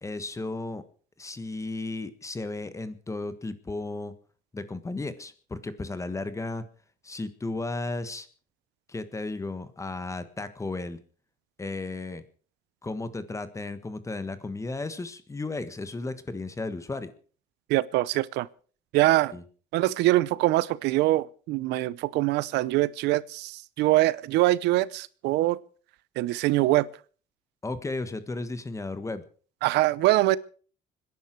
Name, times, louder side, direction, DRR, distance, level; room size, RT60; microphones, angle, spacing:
voice 1, 0.0-0.8 1.2-4.1 4.5-6.6 7.0-8.3 8.9-11.0 11.6-12.2 12.8-17.1 19.3-19.4 27.6-29.2, left 2 dB, 20° left, 1.5 m, -34 dB
voice 2, 17.7-18.5 18.9-19.3 19.7-25.6 26.2-26.9 29.6-30.4, right 17 dB, 90° right, 0.7 m, -23 dB
25.5 x 11.0 x 4.7 m
cardioid pair, 110°, 17 cm